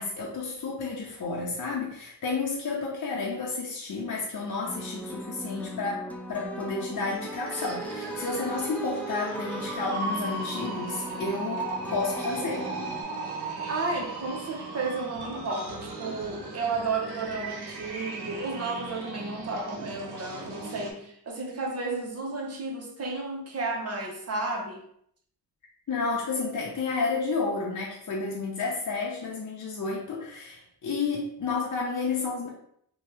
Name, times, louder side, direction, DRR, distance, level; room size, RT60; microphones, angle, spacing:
voice 1, 0.0-12.7 25.9-32.5, left 4 dB, 50° left, -3 dB, 0.7 m, -31 dB
sound 1, 4.6-13.0, right 1 dB, 5° left, 0.3 m, -38 dB
sound 2, 7.1-20.9, right 3 dB, 75° right, 0.8 m, -37 dB
voice 2, 13.7-24.8, right 3 dB, 40° right, 0 dB, 0.8 m, -32 dB
2.7 x 2.3 x 3.3 m, 0.67 s
cardioid pair, 75°, 39 cm